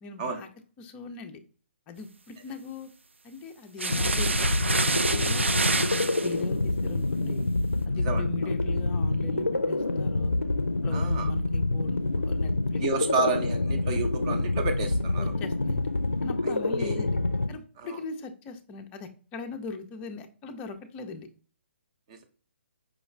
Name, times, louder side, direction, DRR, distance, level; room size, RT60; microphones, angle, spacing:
voice 1, 0.0-0.5 0.8-1.4 1.9-2.9 3.2-4.5 4.8-5.4 5.8-7.5 7.9-10.3 10.8-12.8 13.1-13.2 15.1-15.9 16.2-17.2 17.5-21.3, left 4 dB, 20° left, 6 dB, 0.4 m, -40 dB
sound 1, 3.8-6.3, right 3 dB, 75° right, 0.4 m, -27 dB
sound 2, 3.9-17.5, left 2 dB, 85° left, 0.4 m, -27 dB
voice 2, 10.9-11.3 12.8-15.2 16.4-17.0, right 4 dB, 30° right, 5 dB, 0.7 m, -30 dB
5.0 x 2.3 x 3.2 m, 0.41 s
figure-of-eight pair, 130°, 7 cm